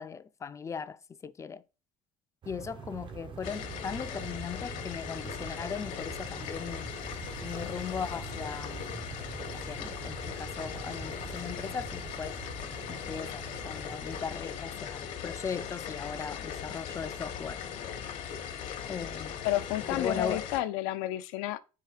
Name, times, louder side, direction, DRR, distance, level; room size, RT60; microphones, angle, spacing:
voice 1, 0.0-1.6 2.5-6.9 7.4-8.9 9.5-12.4 12.9-17.6 18.9-19.4 19.9-20.5, left 6 dB, 20° left, 0.3 m, -38 dB
sound 1, 2.4-14.2, right 7 dB, 35° right, 0.5 m, -45 dB
sound 2, 3.4-20.6, left 8 dB, 65° left, 0.8 m, -39 dB
voice 2, 19.4-21.6, left 14 dB, 85° left, 0.4 m, -31 dB
4.6 x 2.3 x 4.8 m
supercardioid pair, 95°, 14 cm